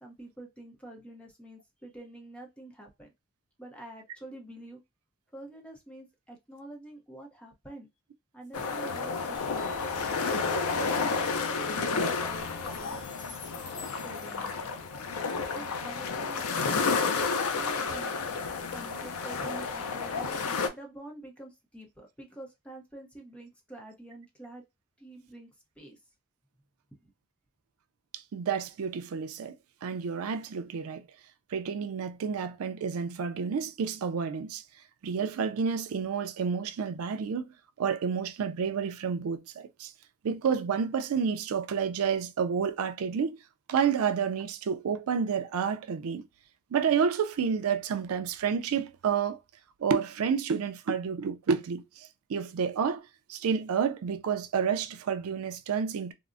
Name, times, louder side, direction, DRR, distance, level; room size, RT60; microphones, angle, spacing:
voice 1, 0.0-3.1 3.6-4.8 5.3-7.9 8.3-9.7 10.2-13.0 14.0-14.6 15.5-16.6 17.5-18.1 18.7-24.6 25.0-25.5 25.8-26.0 27.0-27.1, right 1 dB, 5° left, 0.6 m, -47 dB
sound 1, 8.5-20.7, left 4 dB, 85° left, 0.5 m, -31 dB
Plucked string instrument, 9.3-14.7, left 3 dB, 70° left, 0.9 m, -44 dB
voice 2, 28.1-29.5 29.8-31.0 31.5-34.6 35.0-37.5 37.8-39.9 40.2-43.4 43.7-46.2 46.7-49.4 49.8-56.1, right 6 dB, 80° right, 0.4 m, -30 dB
3.6 x 2.0 x 2.5 m
head